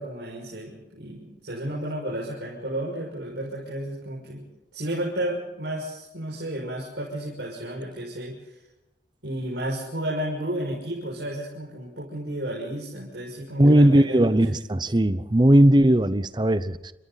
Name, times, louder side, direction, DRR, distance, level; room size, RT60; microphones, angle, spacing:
voice 1, 0.0-4.4 4.7-8.6 9.2-14.5, right 1 dB, 85° right, -4 dB, 6.1 m, -32 dB
voice 2, 13.6-16.9, right 1 dB, 25° right, 14 dB, 0.8 m, -18 dB
30.0 x 26.5 x 4.1 m, 0.96 s
head